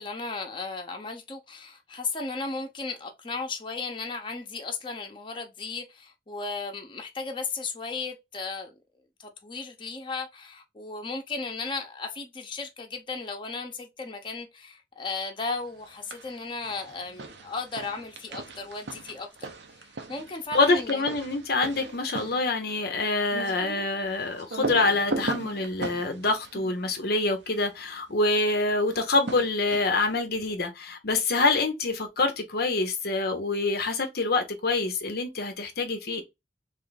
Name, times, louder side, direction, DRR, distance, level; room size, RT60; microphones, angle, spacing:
voice 1, 0.0-8.7 9.2-19.5 19.8-21.0, left 4 dB, 30° left, 0.9 m, -35 dB
sound 1, 15.8-16.3 16.6-27.6 28.9-30.1, right 2 dB, 80° right, 0.9 m, -38 dB
voice 2, 20.5-36.2, left 3 dB, 60° left, 0.8 m, -26 dB
3.3 x 3.3 x 4.0 m
head